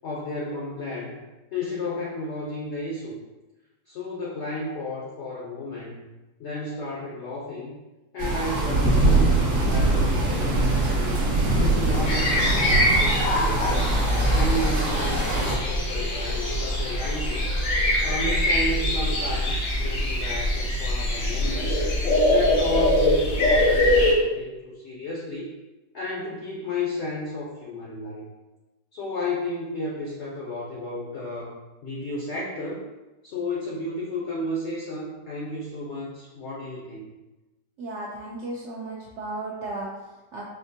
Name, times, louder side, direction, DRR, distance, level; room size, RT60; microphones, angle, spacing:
voice 1, 0.0-1.2 1.5-3.2 3.9-6.0 6.4-7.8 8.1-11.3 11.6-13.9 14.3-17.5 18.0-21.8 22.3-25.5 25.9-28.3 28.9-32.8 33.2-37.1, left 2 dB, 65° left, -3 dB, 0.7 m, -33 dB
sound 1, 8.2-15.6, right 2 dB, 45° right, 0.8 m, -23 dB
sound 2, 12.1-24.1, left 1 dB, 80° left, 1.4 m, -23 dB
voice 2, 37.8-40.4, right 2 dB, 80° right, -4 dB, 0.6 m, -35 dB
4.2 x 2.4 x 2.7 m, 1.1 s
omnidirectional pair, 1.8 m